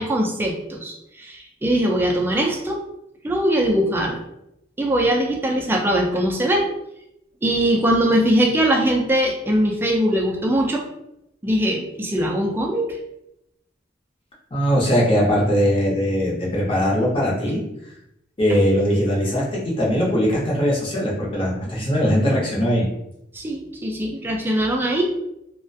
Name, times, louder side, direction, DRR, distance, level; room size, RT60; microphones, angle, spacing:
voice 1, 0.0-2.8 3.2-4.2 4.8-6.6 7.4-10.9 11.4-13.0 18.5-18.6 23.3-25.0, right 1 dB, 10° right, 0 dB, 0.3 m, -21 dB
voice 2, 14.5-17.6 18.4-22.9, equal, 30° left, -4 dB, 0.7 m, -20 dB
2.4 x 2.1 x 2.6 m, 0.83 s
head